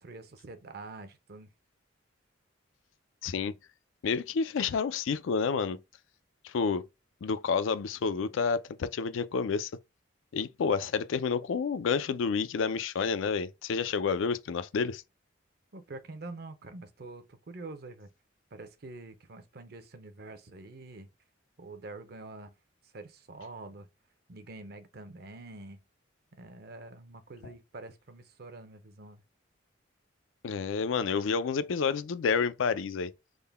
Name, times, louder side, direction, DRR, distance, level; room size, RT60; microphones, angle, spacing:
voice 1, 0.0-1.5 15.7-18.1 18.5-21.1 21.6-22.5 22.9-23.9 24.3-25.8 26.3-29.2, right 2 dB, 50° right, 0.6 m, -46 dB
voice 2, 3.2-3.5 4.0-5.8 6.4-6.8 7.2-9.7 10.3-15.0 30.4-33.1, left 5 dB, 80° left, 0.4 m, -29 dB
3.7 x 2.2 x 3.3 m
head